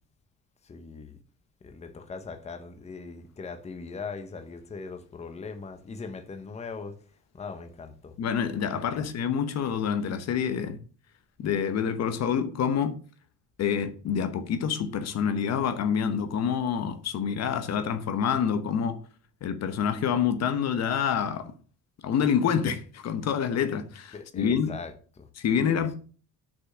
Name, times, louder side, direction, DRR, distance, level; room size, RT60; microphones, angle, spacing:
voice 1, 0.6-1.2 1.6-7.0 7.3-8.2 8.8-9.1 24.1-25.3 25.6-25.9, left 4 dB, 20° left, 1.1 m, -40 dB
voice 2, 8.2-10.8 11.4-13.0 13.6-19.0 19.4-21.5 22.0-24.7 25.4-25.9, left 7 dB, 55° left, 1.1 m, -27 dB
6.7 x 6.1 x 7.4 m
cardioid pair, 170°, 32 cm